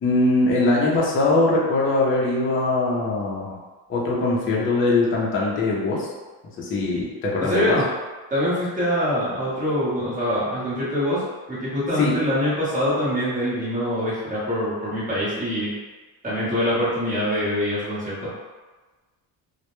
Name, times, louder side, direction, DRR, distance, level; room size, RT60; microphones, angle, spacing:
voice 1, 0.0-3.6 3.9-6.1 6.6-7.7 12.0-12.1, left 2 dB, 30° left, -4 dB, 0.5 m, -21 dB
voice 2, 7.4-7.8 8.3-11.2 11.5-15.7 16.2-18.3, equal, 20° right, -10 dB, 0.9 m, -24 dB
2.1 x 2.1 x 2.9 m, 1.3 s
cardioid pair, 155°, 43 cm